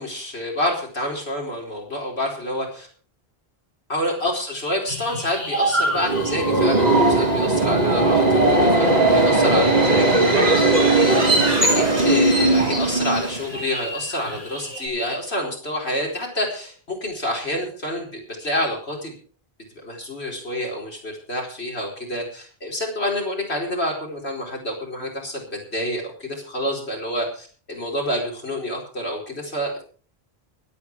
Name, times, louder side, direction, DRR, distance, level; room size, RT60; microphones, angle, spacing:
voice 1, 0.0-2.9 3.9-19.2 19.8-29.8, left 1 dB, 80° left, -1 dB, 5.0 m, -28 dB
sound 1, 4.9-14.9, right 1 dB, 65° right, 6.1 m, -32 dB
Subway metro underground, 5.8-13.6, right 2 dB, 40° right, 3.9 m, -18 dB
23.5 x 8.7 x 4.7 m, 0.43 s
omnidirectional pair, 1.1 m